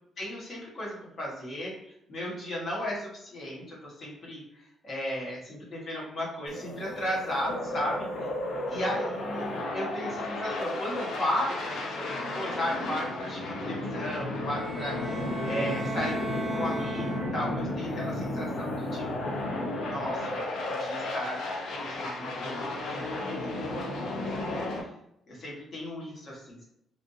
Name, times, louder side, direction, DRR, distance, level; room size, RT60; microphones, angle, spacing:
voice 1, 0.2-8.3 8.7-19.4 19.9-20.4 20.7-21.4 21.7-22.6 22.9-24.9 25.3-26.6, left 1 dB, 35° left, -6 dB, 1.4 m, -35 dB
sound 1, 6.5-24.8, left 1 dB, 75° left, 0.7 m, -33 dB
sound 2, 14.5-17.7, right 2 dB, ahead, 0.7 m, -36 dB
3.2 x 2.6 x 2.7 m, 0.78 s
cardioid pair, 165°, 0 cm